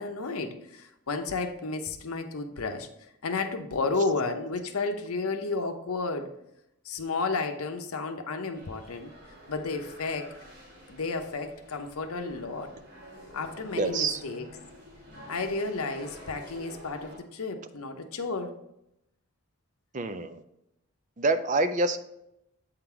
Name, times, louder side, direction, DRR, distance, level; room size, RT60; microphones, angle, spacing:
voice 1, 0.0-2.9 3.2-6.3 6.8-9.1 9.5-10.3 10.9-12.7 13.3-14.5 15.3-18.5, left 3 dB, 75° left, 7 dB, 0.7 m, -32 dB
sound 1, 8.5-17.2, equal, 50° right, 2.5 m, -48 dB
voice 2, 13.8-14.2 19.9-20.4 21.2-22.0, right 3 dB, 35° right, 10 dB, 0.4 m, -26 dB
8.1 x 3.9 x 4.5 m, 0.83 s
head